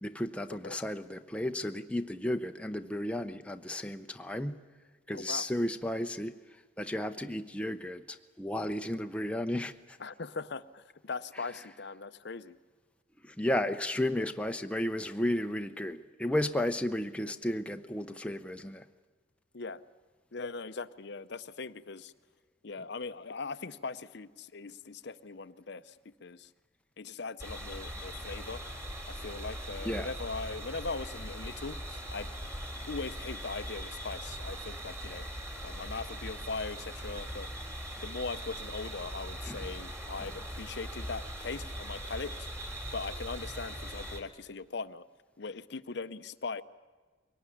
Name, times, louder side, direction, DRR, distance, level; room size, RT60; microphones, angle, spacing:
voice 1, 0.0-4.6 5.1-6.3 6.8-10.0 13.2-18.8 29.8-30.1 39.5-39.6, left 1 dB, 5° left, 6 dB, 0.6 m, -33 dB
voice 2, 5.1-5.5 10.0-12.6 19.5-19.8 20.3-22.1 22.6-26.5 27.0-28.6 29.1-32.3 32.9-35.2 35.6-37.5 38.0-42.5 42.9-45.0 45.4-46.6, left 4 dB, 55° left, 13 dB, 0.7 m, -40 dB
sound 1, 27.4-44.2, equal, 15° right, 2.7 m, -41 dB
23.0 x 18.5 x 9.9 m, 1.4 s
head